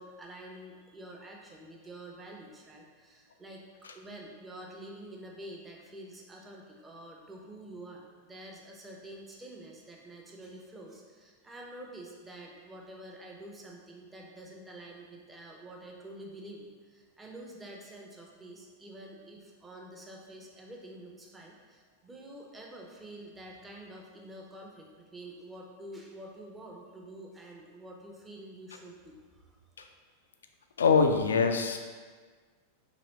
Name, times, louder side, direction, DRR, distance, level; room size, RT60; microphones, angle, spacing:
voice 1, 0.0-3.6 3.9-29.6, right 1 dB, 15° right, -1 dB, 0.6 m, -48 dB
voice 2, 30.8-31.8, left 5 dB, 70° left, 5 dB, 0.3 m, -24 dB
4.0 x 2.9 x 2.9 m, 1.5 s
figure-of-eight pair, 90°, 0 cm